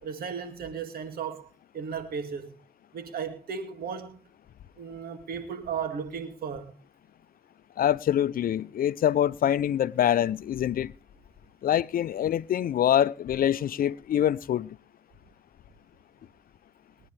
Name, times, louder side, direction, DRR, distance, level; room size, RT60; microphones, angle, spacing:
voice 1, 0.0-2.6 2.9-4.2 4.8-6.7, right 6 dB, 75° right, 2.3 m, -35 dB
voice 2, 7.8-10.9 11.6-14.8, left 10 dB, 65° left, 0.6 m, -25 dB
21.5 x 9.9 x 3.3 m
supercardioid pair, 40°, 16 cm